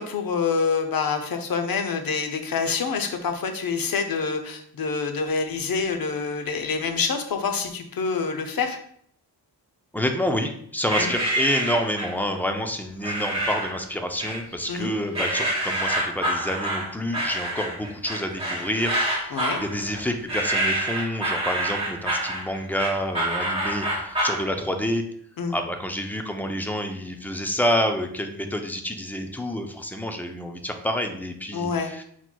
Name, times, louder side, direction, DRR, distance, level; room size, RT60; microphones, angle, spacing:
voice 1, 0.0-8.8 11.0-11.1 14.7-14.9 19.3-19.6 25.4-25.6 31.5-31.9, left 5 dB, 60° left, 6 dB, 0.7 m, -26 dB
voice 2, 9.9-25.0 25.5-32.0, equal, 5° left, 5 dB, 0.3 m, -28 dB
sound 1, 10.9-12.2 13.0-13.8 14.2-14.8 15.1-24.4, right 1 dB, 15° right, 1.6 m, -27 dB
4.4 x 4.2 x 2.2 m, 0.65 s
wide cardioid pair, 125°, 40 cm